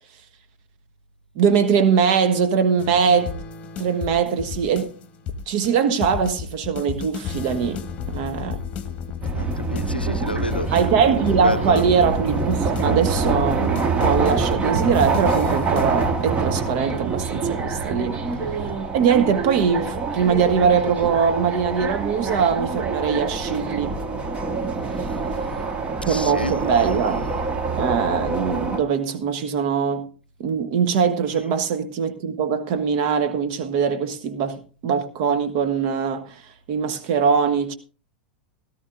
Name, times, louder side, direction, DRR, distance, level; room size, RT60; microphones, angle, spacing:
voice 1, 1.3-3.3 3.8-4.9 5.5-8.6 10.7-18.2 18.9-24.0 26.0-27.2 27.8-30.1 30.4-36.4 36.7-37.7, right 6 dB, 45° right, 1.3 m, -22 dB
sound 1, 2.8-16.1, left 7 dB, 25° left, 1.4 m, -32 dB
sound 2, 9.2-28.8, right 4 dB, 25° right, 1.5 m, -26 dB
voice 2, 9.3-10.9 11.3-11.9 18.6-18.8 26.1-26.9 31.3-31.4, left 2 dB, 90° left, 0.5 m, -30 dB
17.5 x 13.0 x 2.6 m
figure-of-eight pair, 90°, 5 cm